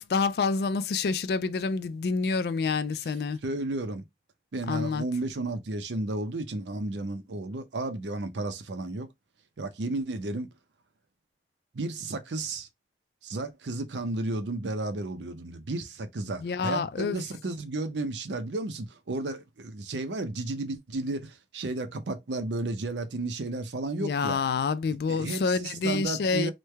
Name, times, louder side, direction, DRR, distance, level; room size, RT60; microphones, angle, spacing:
voice 1, 0.0-3.4 4.7-5.0 16.4-17.2 24.0-26.5, left 4 dB, 65° left, 0.3 m, -28 dB
voice 2, 3.4-4.0 4.5-9.1 9.6-10.5 11.7-12.7 13.2-24.4 25.1-26.5, right 2 dB, 90° right, 0.6 m, -33 dB
3.2 x 2.2 x 3.2 m
head